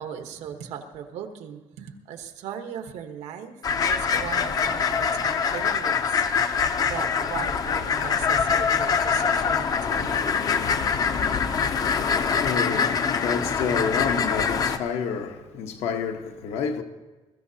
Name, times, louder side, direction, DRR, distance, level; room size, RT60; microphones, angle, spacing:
voice 1, 0.0-6.2 6.9-10.3, right 8 dB, 80° right, 1.2 m, -38 dB
sound 1, 3.6-14.8, left 6 dB, 35° left, 0.5 m, -24 dB
voice 2, 11.4-16.8, left 6 dB, 75° left, 1.0 m, -30 dB
21.5 x 14.0 x 2.8 m
cardioid pair, 180°, 11 cm